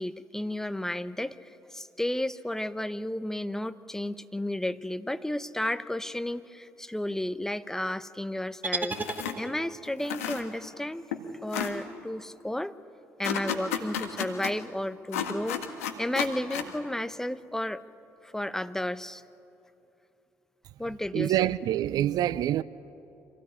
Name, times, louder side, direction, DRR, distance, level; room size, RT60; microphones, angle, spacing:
voice 1, 0.0-9.0 9.4-11.1 11.4-12.7 13.2-15.6 16.0-17.8 18.2-19.2 20.8-21.6, left 1 dB, 5° left, 0.9 m, -33 dB
sound 1, 8.6-9.9, right 3 dB, 25° right, 1.8 m, -34 dB
sound 2, 8.9-9.4 9.9-10.8 11.1-11.2 11.5-11.7 13.2-14.5 15.1-16.7, left 9 dB, 85° left, 1.6 m, -32 dB
voice 2, 21.1-22.6, right 13 dB, 60° right, 0.5 m, -26 dB
26.0 x 17.5 x 9.9 m
hypercardioid pair, 55°, 8 cm